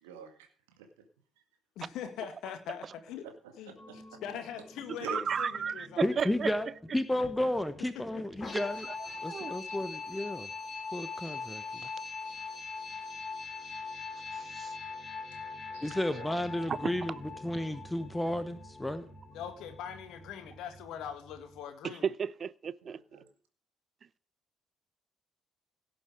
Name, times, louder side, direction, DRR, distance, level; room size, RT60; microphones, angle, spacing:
voice 1, 0.0-0.5 0.8-0.9 3.4-4.2 5.0-5.2 9.7-9.8 15.7-16.3 22.8-23.3, right 6 dB, 70° right, 2.1 m, -47 dB
voice 2, 1.8-3.3 3.6-6.1 8.0-8.2 9.4-9.5 19.3-22.1, left 9 dB, 60° left, 2.0 m, -42 dB
sound 1, 3.8-21.6, left 4 dB, 30° left, 4.3 m, -43 dB
voice 3, 5.1-6.5 8.5-8.6 9.1-9.5 14.3-14.7 16.7-16.9 21.8-23.0, right 6 dB, 40° right, 0.5 m, -34 dB
voice 4, 6.0-8.9 9.2-10.5 10.9-11.8 15.8-19.1, left 1 dB, 10° left, 1.2 m, -32 dB
17.0 x 7.6 x 5.0 m
figure-of-eight pair, 45°, 0 cm